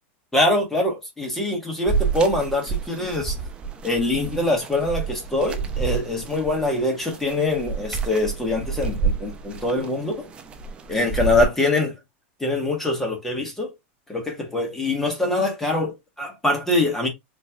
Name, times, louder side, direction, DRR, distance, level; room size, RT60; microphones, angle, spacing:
voice 1, 0.3-3.3 3.8-10.3 10.9-12.0 12.4-13.7 14.1-17.1, left 2 dB, 5° left, 1.2 m, -24 dB
sound 1, 1.9-11.4, right 5 dB, 15° right, 0.5 m, -29 dB
4.3 x 3.0 x 2.4 m
supercardioid pair, 165°, 7 cm